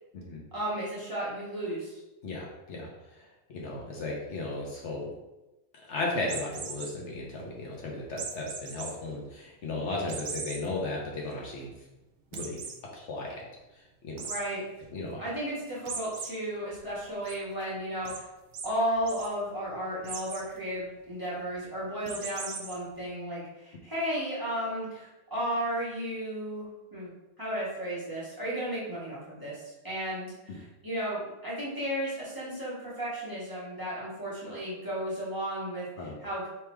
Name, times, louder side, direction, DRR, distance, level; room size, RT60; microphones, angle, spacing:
voice 1, 0.5-2.0 14.3-14.6 15.2-18.3 18.6-36.5, right 1 dB, 15° right, -9 dB, 1.4 m, -34 dB
voice 2, 2.2-5.1 5.9-11.7 12.3-12.6 12.9-13.5 14.0-14.2 14.9-15.2 36.0-36.2, left 2 dB, 65° left, -2 dB, 1.1 m, -35 dB
sound 1, 6.3-6.9 8.2-8.9 9.3-9.4 10.1-10.6 11.1-11.2 11.4-11.5 12.3-12.8 14.2-14.4 15.8-16.3 16.7-17.3 18.0-18.2 18.5-18.7 19.0-19.3 20.0-20.4 22.0-22.7, right 5 dB, 70° right, 0.9 m, -38 dB
3.4 x 2.9 x 4.4 m, 1.0 s
omnidirectional pair, 1.3 m